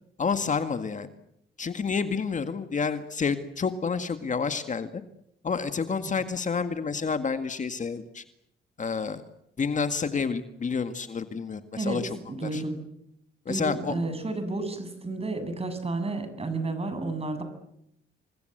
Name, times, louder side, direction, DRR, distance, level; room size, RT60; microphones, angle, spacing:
voice 1, 0.2-1.1 1.6-5.0 5.4-8.2 8.8-9.2 9.6-12.2 12.4-12.6 13.5-14.0, left 5 dB, 40° left, 9 dB, 2.0 m, -29 dB
voice 2, 11.8-12.8 13.5-17.4, right 2 dB, 30° right, 9 dB, 7.4 m, -31 dB
29.0 x 23.0 x 8.1 m, 0.76 s
cardioid pair, 90°, 20 cm